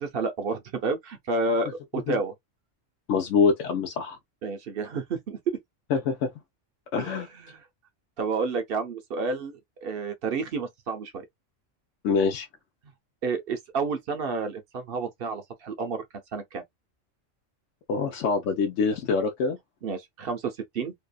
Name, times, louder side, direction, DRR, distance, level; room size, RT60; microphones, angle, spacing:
voice 1, 0.0-2.3 4.4-5.6 7.0-7.6 8.2-11.3 12.8-12.9 13.2-16.0 16.3-16.6 19.8-20.9, right 4 dB, 55° right, 0.7 m, -30 dB
voice 2, 3.1-4.2 5.9-6.3 6.9-7.3 12.0-12.5 17.9-19.6, left 5 dB, 75° left, 0.9 m, -25 dB
2.7 x 2.3 x 2.2 m
omnidirectional pair, 1.3 m